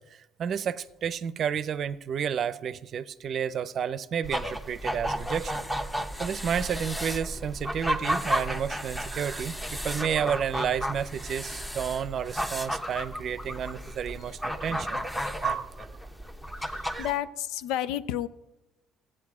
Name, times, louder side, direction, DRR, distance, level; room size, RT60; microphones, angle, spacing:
voice 1, 0.0-5.6 6.2-15.0 15.4-15.9 16.9-17.1, right 8 dB, 50° right, 0.6 m, -31 dB
sound 1, 4.2-17.2, equal, 5° left, 0.9 m, -33 dB
voice 2, 16.6-18.3, left 12 dB, 85° left, 0.5 m, -31 dB
14.5 x 8.8 x 4.9 m
cardioid pair, 100°, 0 cm